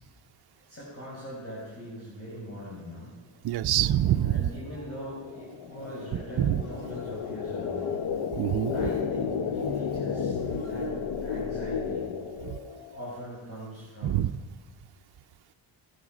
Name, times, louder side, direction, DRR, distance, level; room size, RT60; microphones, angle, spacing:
voice 1, 0.6-3.1 4.2-7.9 8.7-11.0 11.2-12.1 12.9-14.3, equal, 30° left, -6 dB, 5.2 m, -41 dB
voice 2, 3.4-4.5 6.4-6.6 8.4-8.7 12.4-12.6 14.0-14.3, right 12 dB, 55° right, 9 dB, 0.6 m, -25 dB
sound 1, 3.8-11.3, left 1 dB, 85° left, 5.8 m, -55 dB
sound 2, 4.1-13.0, left 6 dB, 65° left, 0.8 m, -33 dB
18.5 x 13.5 x 5.0 m, 1.3 s
cardioid pair, 125°, 48 cm